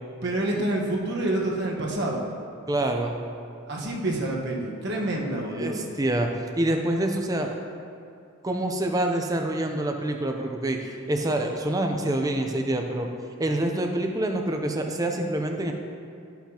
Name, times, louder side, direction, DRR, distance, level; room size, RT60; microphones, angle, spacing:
voice 1, 0.2-2.2 3.7-5.8, right 1 dB, 55° right, -2 dB, 1.2 m, -27 dB
voice 2, 2.7-3.2 5.5-6.3 6.6-7.5 8.4-13.1 13.4-15.7, right 1 dB, 15° right, 3 dB, 0.5 m, -26 dB
13.0 x 5.9 x 2.9 m, 2.5 s
head